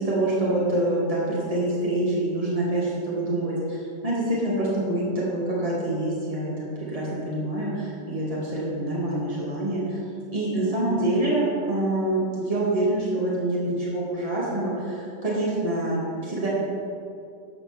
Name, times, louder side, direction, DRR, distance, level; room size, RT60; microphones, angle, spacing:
voice 1, 0.0-3.8 4.0-10.0 10.3-16.5, right 1 dB, 30° right, -7 dB, 2.7 m, -26 dB
11.5 x 5.8 x 7.2 m, 2.4 s
omnidirectional pair, 1.3 m